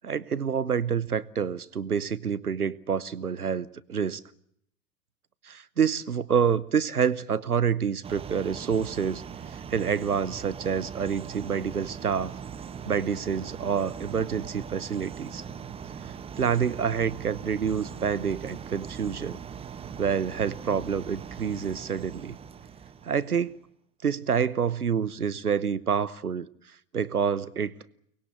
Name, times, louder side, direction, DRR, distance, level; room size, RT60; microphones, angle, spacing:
voice 1, 0.0-4.2 5.5-9.2 9.7-12.3 12.9-15.4 16.0-19.4 20.0-22.4 23.0-23.6 24.0-26.5 26.9-27.7, right 7 dB, 80° right, 20 dB, 1.0 m, -27 dB
sound 1, 8.0-23.5, right 7 dB, 15° right, 0.9 m, -40 dB
23.5 x 20.5 x 8.0 m, 0.70 s
figure-of-eight pair, 95°, 44 cm